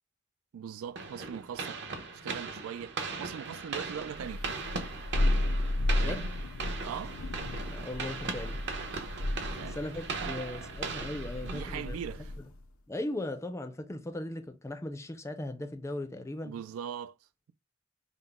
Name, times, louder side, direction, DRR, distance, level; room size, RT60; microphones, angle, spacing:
voice 1, 0.5-1.8 2.1-4.5 6.0-6.3 6.8-7.2 9.4-9.8 10.2-10.8 11.4-12.3 16.4-17.1, right 8 dB, 90° right, 0.4 m, -41 dB
sound 1, 1.0-12.2, right 4 dB, 55° right, 0.9 m, -39 dB
Thunder, 4.1-12.6, left 1 dB, 90° left, 0.6 m, -33 dB
voice 2, 5.9-6.4 7.7-8.6 9.7-12.0 12.9-16.5, left 1 dB, 15° left, 0.4 m, -38 dB
5.6 x 2.0 x 3.4 m
head